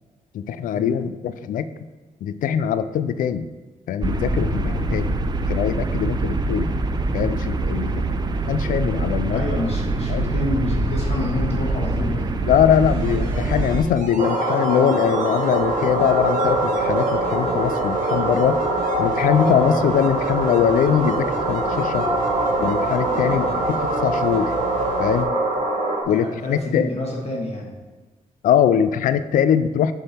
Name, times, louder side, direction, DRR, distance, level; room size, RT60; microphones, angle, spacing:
voice 1, 0.3-1.7 2.2-3.5 3.9-5.2 5.5-6.7 7.1-8.2 8.5-9.4 10.1-10.3 12.4-18.6 19.0-22.1 22.6-24.5 25.0-25.3 26.1-26.9 28.4-29.9, left 8 dB, 75° left, 13 dB, 0.4 m, -22 dB
sound 1, 4.0-13.8, right 2 dB, 30° right, 0.4 m, -24 dB
voice 2, 9.3-12.3 23.1-23.6 26.0-27.8, left 1 dB, 50° left, -2 dB, 1.3 m, -29 dB
sound 2, 12.7-25.2 25.5-25.6, right 3 dB, 75° right, 0.9 m, -35 dB
sound 3, 14.2-26.0, right 1 dB, 45° right, 1.2 m, -23 dB
6.8 x 3.7 x 4.2 m, 1.3 s
cardioid pair, 90°, 14 cm